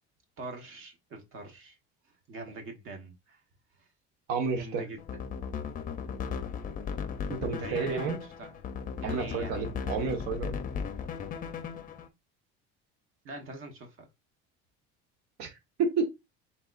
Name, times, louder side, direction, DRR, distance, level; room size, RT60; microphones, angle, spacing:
voice 1, 0.4-1.8 2.3-3.4 4.5-5.0 7.5-8.6 9.0-9.7 13.2-14.1, right 2 dB, 45° right, 1.4 m, -43 dB
voice 2, 4.3-4.8 7.3-8.2 9.0-10.6 15.4-15.5 15.8-16.1, right 5 dB, 65° right, 1.5 m, -30 dB
sound 1, 5.0-12.1, left 6 dB, 30° left, 0.6 m, -36 dB
4.3 x 4.0 x 2.5 m
cardioid pair, 125°, 29 cm